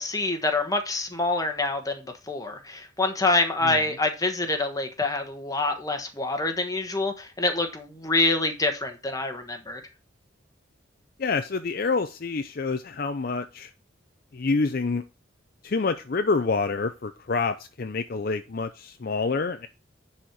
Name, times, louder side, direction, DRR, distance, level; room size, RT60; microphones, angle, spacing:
voice 1, 0.0-9.8, left 2 dB, 20° left, 1.2 m, -26 dB
voice 2, 11.2-13.7 14.3-15.1 15.6-19.7, left 4 dB, 50° left, 0.5 m, -27 dB
9.9 x 4.4 x 4.7 m
head